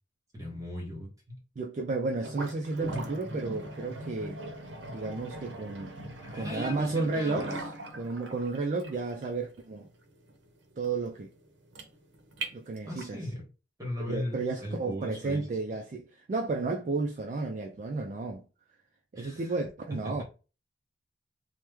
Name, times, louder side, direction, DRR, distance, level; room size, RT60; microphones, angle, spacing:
voice 1, 0.3-1.4 6.2-7.5 12.8-13.4 13.8-15.4 19.1-19.4 20.0-20.2, left 1 dB, 20° right, 1.1 m, -38 dB
voice 2, 1.6-4.4 4.9-6.0 6.3-7.6 7.9-9.9 10.8-11.3 12.5-13.3 14.0-18.4 19.1-20.2, right 3 dB, 40° right, 0.3 m, -32 dB
sound 1, 2.2-13.2, right 1 dB, 75° right, 0.7 m, -40 dB
3.0 x 2.1 x 3.4 m
head